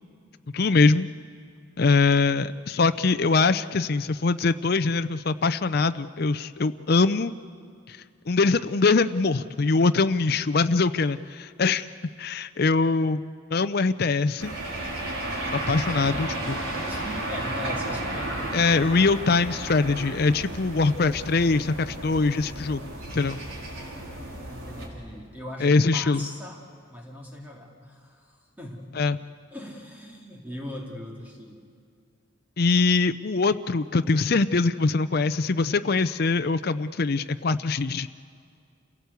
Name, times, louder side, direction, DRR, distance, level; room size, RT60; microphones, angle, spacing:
voice 1, 0.5-1.1 1.8-7.3 7.9-8.0 8.3-11.9 12.2-13.2 13.5-14.5 15.5-16.6 18.5-22.8 23.1-23.4 25.6-26.3 28.9-29.2 32.6-38.1, left 4 dB, 50° left, 10 dB, 0.6 m, -23 dB
sound 1, 14.4-24.9, right 1 dB, 90° right, 4.6 m, -33 dB
voice 2, 16.1-16.4 16.7-18.7 23.7-26.6 26.9-28.9 29.5-31.6, left 1 dB, 10° right, -1 dB, 2.5 m, -40 dB
28.0 x 17.0 x 8.2 m, 2.3 s
head